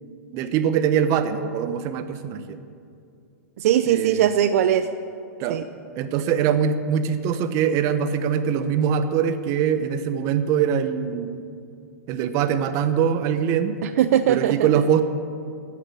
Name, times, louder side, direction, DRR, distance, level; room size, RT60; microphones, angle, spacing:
voice 1, 0.3-2.6 3.9-4.3 5.4-5.6 5.9-11.4 12.1-13.8 14.3-15.0, right 8 dB, 35° right, 10 dB, 1.0 m, -23 dB
voice 2, 3.6-4.9 5.5-5.6 13.8-14.7, right 10 dB, 60° right, 11 dB, 0.6 m, -20 dB
14.0 x 9.3 x 8.5 m, 2.5 s
hypercardioid pair, 145°, 9 cm